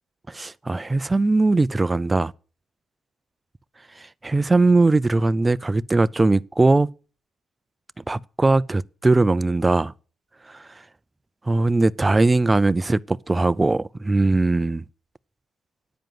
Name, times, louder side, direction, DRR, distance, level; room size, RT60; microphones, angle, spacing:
voice 1, 0.3-2.3 4.2-6.9 8.1-9.9 11.5-14.8, right 2 dB, 20° right, 0.5 m, -20 dB
10.5 x 9.0 x 7.7 m
cardioid pair, 105°, 0 cm